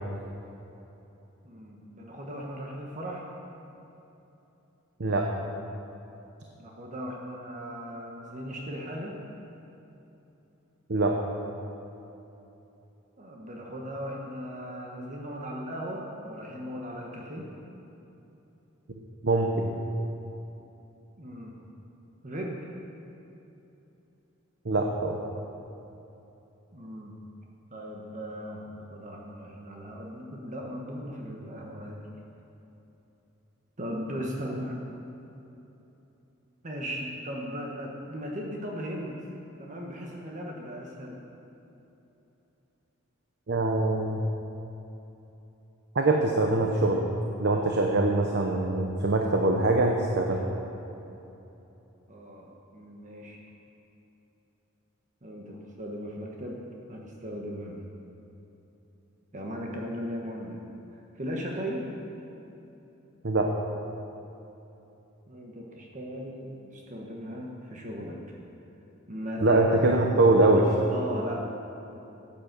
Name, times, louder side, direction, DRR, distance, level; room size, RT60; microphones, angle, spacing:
voice 1, 1.4-3.3 6.5-9.2 13.2-17.5 21.2-21.6 22.2-22.7 26.7-27.2 27.7-32.1 33.8-34.8 36.6-39.2 39.6-41.2 52.1-52.5 52.7-53.4 55.2-57.8 59.3-60.6 60.9-62.0 65.3-68.4 69.1-69.9 70.9-71.4, equal, 40° right, -1 dB, 1.3 m, -37 dB
voice 2, 19.2-19.7 24.6-25.2 43.5-44.2 45.9-47.0 47.4-50.4 63.2-63.5 69.4-70.7, right 2 dB, 55° right, 1 dB, 0.9 m, -23 dB
13.5 x 8.8 x 6.7 m, 3.0 s
head